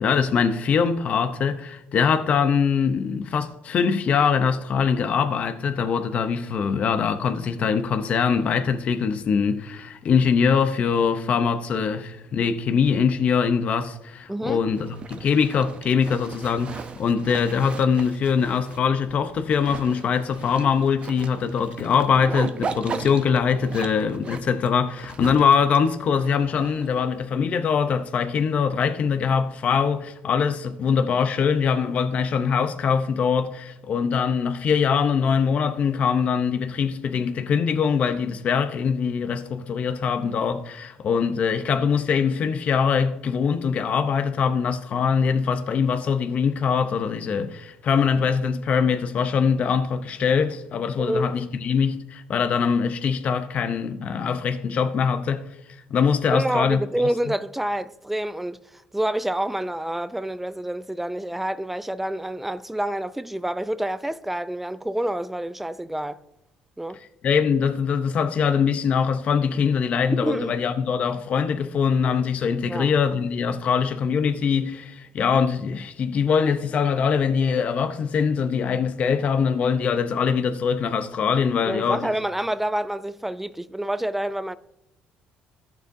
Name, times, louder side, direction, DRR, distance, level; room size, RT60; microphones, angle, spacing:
voice 1, 0.0-55.4 55.9-56.8 67.2-82.1, left 6 dB, 45° left, 0.6 m, -23 dB
voice 2, 14.3-14.6 51.0-51.3 56.3-66.2 66.8-67.0 70.2-70.5 72.7-72.9 81.6-84.5, right 1 dB, 5° right, 0.3 m, -28 dB
Zipper (clothing), 14.7-27.2, right 5 dB, 35° right, 0.6 m, -37 dB
14.0 x 7.0 x 2.6 m
cardioid pair, 120°, 3 cm